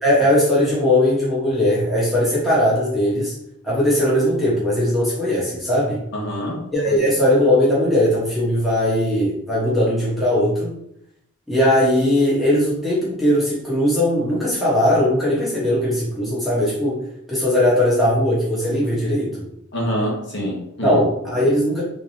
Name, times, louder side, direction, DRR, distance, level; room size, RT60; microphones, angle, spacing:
voice 1, 0.0-3.3 3.6-6.0 6.7-10.7 11.5-17.0 17.3-19.4 20.8-21.8, left 1 dB, ahead, -8 dB, 1.3 m, -19 dB
voice 2, 6.1-7.0 19.7-21.0, equal, 55° left, -4 dB, 1.2 m, -26 dB
3.7 x 3.3 x 2.8 m, 0.76 s
head